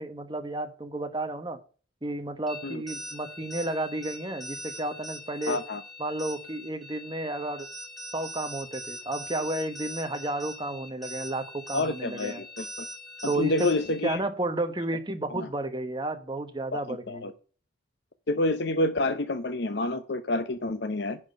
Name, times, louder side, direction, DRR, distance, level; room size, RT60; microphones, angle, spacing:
voice 1, 0.0-1.6 2.0-5.6 6.0-7.7 8.1-12.4 13.3-13.7 14.0-17.3, right 2 dB, 25° right, 8 dB, 1.1 m, -32 dB
sound 1, 2.5-14.1, equal, ahead, 2.1 m, -42 dB
voice 2, 5.5-5.8 11.7-12.9 13.2-14.2 15.3-15.5 16.7-17.3 18.3-21.2, left 2 dB, 65° left, 9 dB, 0.8 m, -28 dB
10.5 x 4.3 x 6.5 m, 0.37 s
head